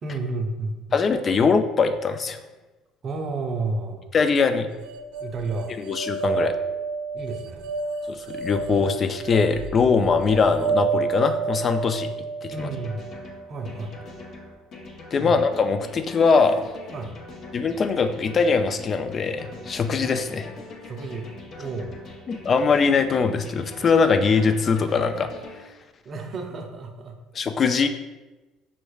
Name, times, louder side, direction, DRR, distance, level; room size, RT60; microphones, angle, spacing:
voice 1, 0.0-1.0 3.0-4.0 5.2-5.7 7.1-7.7 12.5-13.0 13.5-13.9 15.2-15.4 16.9-17.1 20.8-21.3 21.6-22.2 26.0-27.1, right 3 dB, 40° right, 4 dB, 0.6 m, -31 dB
voice 2, 0.9-2.4 4.1-4.7 5.8-6.5 8.1-12.1 12.4-12.5 15.1-16.6 17.5-20.5 22.3-25.3 27.3-27.9, left 5 dB, 35° left, 8 dB, 0.3 m, -21 dB
sound 1, 4.8-14.0, right 4 dB, 85° right, 0.3 m, -30 dB
sound 2, 12.6-25.5, left 3 dB, 50° left, 0.7 m, -42 dB
5.3 x 3.2 x 2.3 m, 1.1 s
cardioid pair, 110°, 0 cm